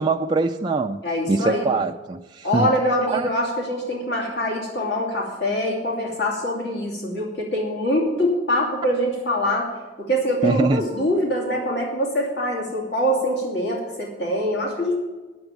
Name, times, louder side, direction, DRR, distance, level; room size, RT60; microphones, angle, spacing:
voice 1, 0.0-1.0 1.3-2.7 3.1-3.3 10.4-10.8, right 3 dB, 25° right, 3 dB, 0.4 m, -22 dB
voice 2, 1.0-1.7 2.4-9.7 10.0-15.0, equal, 65° left, -2 dB, 2.7 m, -24 dB
9.4 x 7.0 x 9.0 m, 1.2 s
head